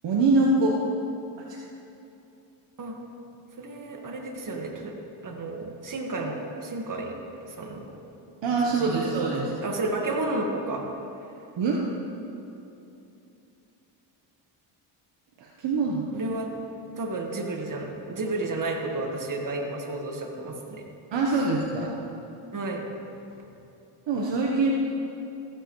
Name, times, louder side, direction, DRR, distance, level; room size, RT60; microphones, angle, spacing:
voice 1, 0.0-0.8 1.5-1.6 8.4-9.5 11.6-11.8 15.4-16.1 21.1-21.9 24.1-24.7, right 3 dB, 60° right, -2 dB, 1.2 m, -24 dB
voice 2, 3.6-4.9 5.2-7.1 7.5-8.0 8.8-9.2 9.6-10.9 16.1-16.5 17.0-20.8 21.8-21.9 22.5-22.9, right 2 dB, 40° right, 1 dB, 1.8 m, -32 dB
15.5 x 7.9 x 3.2 m, 2.9 s
supercardioid pair, 75°, 50 cm